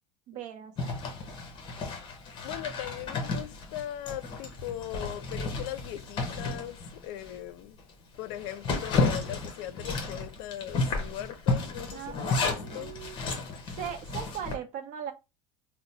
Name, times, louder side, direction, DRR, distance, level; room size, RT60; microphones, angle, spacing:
voice 1, 0.3-1.0 11.9-13.2 13.8-15.1, right 9 dB, 50° right, 0.7 m, -39 dB
Zipper (clothing), 0.8-7.4 7.8-7.9 8.3-14.6, left 3 dB, 30° left, 0.9 m, -32 dB
voice 2, 2.4-6.8 7.0-7.8 8.2-12.9, left 12 dB, 70° left, 0.5 m, -39 dB
2.9 x 2.0 x 3.9 m
cardioid pair, 145°, 15 cm